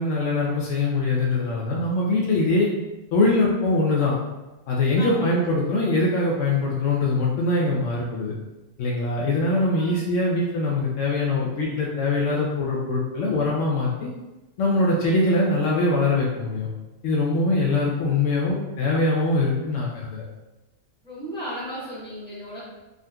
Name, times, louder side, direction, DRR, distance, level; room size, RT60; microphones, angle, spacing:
voice 1, 0.0-2.7 3.1-4.1 4.7-8.3 8.8-14.1 14.6-16.7 17.0-20.2, left 2 dB, 75° left, -4 dB, 0.9 m, -22 dB
voice 2, 5.0-5.3 9.7-10.0 21.0-22.6, equal, 5° left, -10 dB, 1.3 m, -35 dB
3.6 x 2.6 x 2.2 m, 1.0 s
omnidirectional pair, 1.3 m